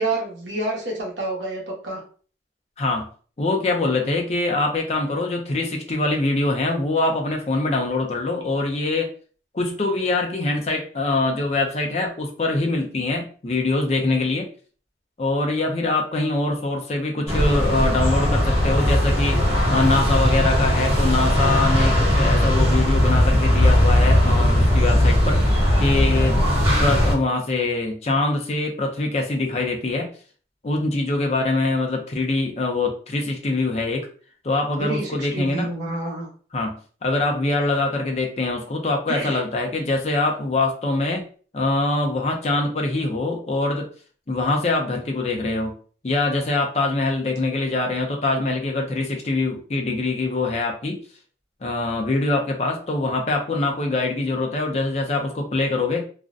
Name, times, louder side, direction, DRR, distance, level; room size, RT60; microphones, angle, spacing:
voice 1, 0.0-2.0 34.8-36.3 39.1-39.4, right 2 dB, 80° right, -2 dB, 0.9 m, -28 dB
voice 2, 2.8-3.1 3.4-9.1 9.5-14.5 15.2-19.4 19.7-26.4 26.8-30.1 30.6-34.1 34.4-35.7 36.5-41.3 41.5-43.9 44.3-45.8 46.0-51.0 51.6-56.0, left 2 dB, 35° left, 2 dB, 0.5 m, -23 dB
sound 1, 17.3-27.1, equal, 30° right, 0.9 m, -18 dB
2.4 x 2.1 x 2.4 m, 0.42 s
head